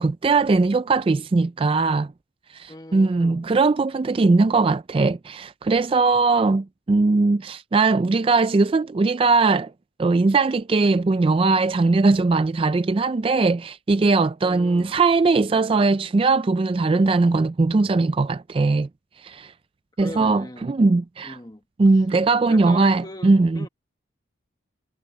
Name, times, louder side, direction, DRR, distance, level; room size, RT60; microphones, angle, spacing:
voice 1, 0.0-2.1 2.5-9.7 10.0-18.9 19.2-19.5 20.0-21.4 21.8-23.6, right 3 dB, 30° right, 0.3 m, -20 dB
voice 2, 2.7-3.5 14.4-15.0 20.0-20.7 21.2-21.6 22.5-23.7, left 1 dB, 20° left, 1.4 m, -40 dB
head